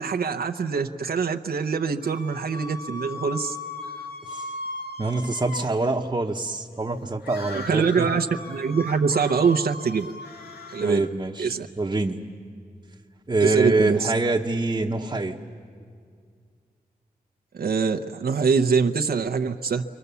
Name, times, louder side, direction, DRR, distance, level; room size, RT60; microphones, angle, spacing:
voice 1, 0.0-3.6 7.5-10.1 10.7-11.0 11.4-11.7 13.4-14.1 17.5-19.8, right 5 dB, 70° right, 5 dB, 0.8 m, -24 dB
sound 1, 2.0-5.7 7.2-11.1, left 3 dB, 90° left, 2.0 m, -37 dB
voice 2, 5.0-8.1 10.8-12.2 13.3-15.4, right 2 dB, 25° right, -1 dB, 1.0 m, -25 dB
29.0 x 25.0 x 6.9 m, 2.2 s
wide cardioid pair, 85°, 16 cm